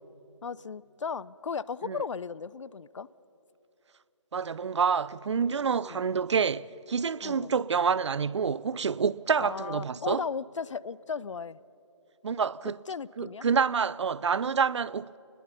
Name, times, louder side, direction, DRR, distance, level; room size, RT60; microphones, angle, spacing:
voice 1, 0.4-3.1 5.8-6.0 7.2-7.6 9.4-11.6 12.6-13.5, left 6 dB, 70° left, 0.5 m, -36 dB
voice 2, 4.3-10.2 12.2-12.8 13.2-15.2, right 6 dB, 65° right, 0.5 m, -27 dB
22.5 x 20.5 x 5.6 m
figure-of-eight pair, 160°, 16 cm